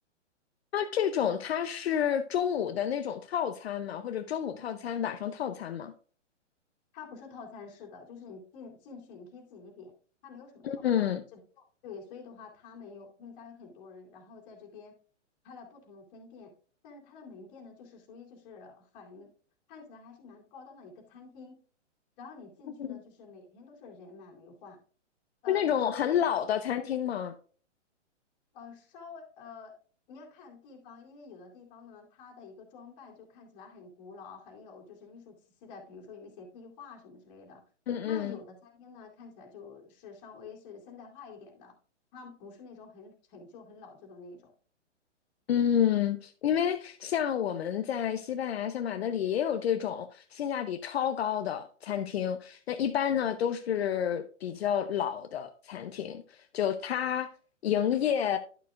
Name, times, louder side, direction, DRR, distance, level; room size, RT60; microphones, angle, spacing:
voice 1, 0.7-5.9 10.6-11.2 22.8-23.0 25.5-27.3 37.9-38.4 45.5-57.3 57.6-58.4, left 9 dB, 55° left, 0.7 m, -29 dB
voice 2, 6.9-9.9 10.2-14.9 15.4-16.5 16.8-19.3 19.7-21.6 22.2-24.8 25.4-26.2 28.5-29.7 30.1-37.6 38.0-41.7 42.1-44.5, left 5 dB, 35° left, 2.7 m, -49 dB
11.0 x 6.7 x 2.4 m
hypercardioid pair, 140°, 37 cm